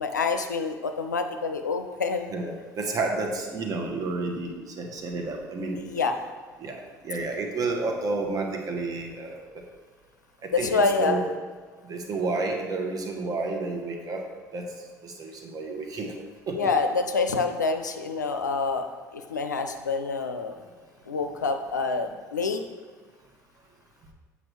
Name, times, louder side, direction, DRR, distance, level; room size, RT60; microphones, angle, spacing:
voice 1, 0.0-2.3 5.8-6.1 10.5-11.3 16.5-18.9 19.1-20.6 21.1-22.6, left 4 dB, 85° left, 6 dB, 0.4 m, -27 dB
voice 2, 2.3-5.8 6.6-9.6 10.4-11.4 11.8-14.3 14.5-14.7 15.0-16.1 16.5-16.7, right 3 dB, 40° right, 2 dB, 1.1 m, -31 dB
7.5 x 5.5 x 3.1 m, 1.5 s
figure-of-eight pair, 60°, 9 cm